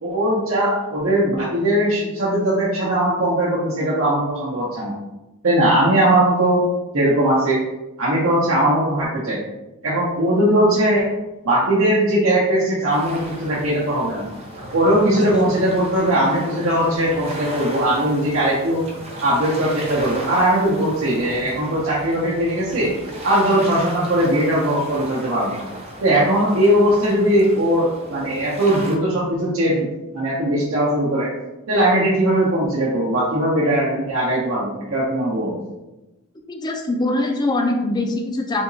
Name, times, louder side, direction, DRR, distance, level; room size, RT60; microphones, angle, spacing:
voice 1, 0.0-4.9 5.4-6.6 6.9-7.6 8.0-9.4 9.8-11.0 11.4-14.2 14.7-18.8 19.2-22.9 23.2-25.6 26.0-29.9 30.1-31.3 31.7-35.5, right 1 dB, 70° right, -7 dB, 0.7 m, -19 dB
sound 1, 12.9-29.0, equal, 30° right, 0.6 m, -36 dB
voice 2, 36.3-38.6, left 2 dB, 20° left, 3 dB, 0.3 m, -23 dB
3.5 x 2.9 x 2.6 m, 1.0 s
head